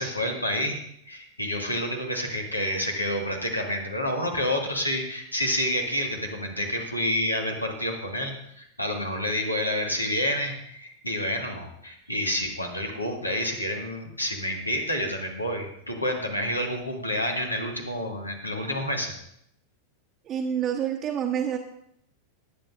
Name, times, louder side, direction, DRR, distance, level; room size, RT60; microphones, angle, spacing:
voice 1, 0.0-19.1, equal, 85° left, 2 dB, 1.9 m, -29 dB
voice 2, 20.3-21.6, right 8 dB, 30° right, -1 dB, 1.1 m, -27 dB
19.0 x 8.8 x 2.6 m, 0.73 s
figure-of-eight pair, 90°, 0 cm